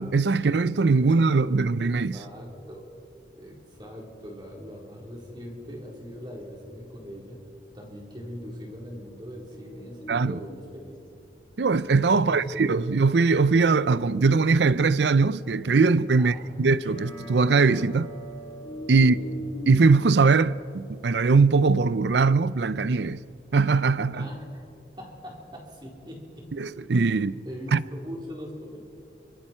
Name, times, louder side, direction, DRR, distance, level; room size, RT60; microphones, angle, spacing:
voice 1, 0.0-2.2 10.1-10.4 11.6-18.1 18.9-19.1 19.7-23.2 23.5-24.3 26.5-27.4 27.7-27.8, right 4 dB, 80° right, 0.5 m, -21 dB
voice 2, 1.0-1.7 2.1-3.0 3.3-7.4 7.7-11.0 12.1-12.9 16.2-16.6 19.0-19.4 24.1-24.6 25.0-26.5 27.4-28.9, equal, 25° right, 4.0 m, -41 dB
sound 1, 6.0-7.6 9.3-10.7 11.1-11.2 11.7-12.2 12.7-24.5, equal, 50° left, 4.4 m, -45 dB
sound 2, 16.8-21.8, right 2 dB, 25° left, 6.9 m, -46 dB
28.0 x 24.5 x 4.5 m
head